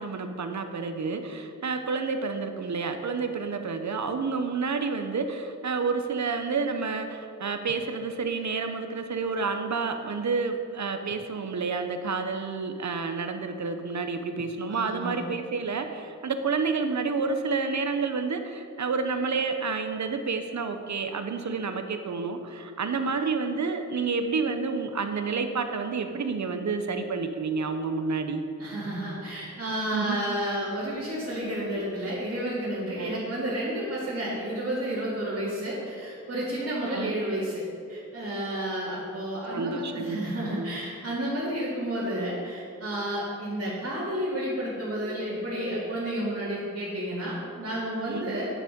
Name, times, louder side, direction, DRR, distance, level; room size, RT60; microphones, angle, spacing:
voice 1, 0.0-28.4 29.9-30.2 33.0-33.2 36.8-37.2 39.5-40.2 40.5-40.8 48.1-48.4, right 4 dB, 60° right, 7 dB, 0.8 m, -29 dB
voice 2, 14.7-15.2 28.6-37.6 37.9-48.5, right 1 dB, 45° right, -9 dB, 2.4 m, -31 dB
9.9 x 7.1 x 5.2 m, 2.4 s
wide cardioid pair, 115°, 31 cm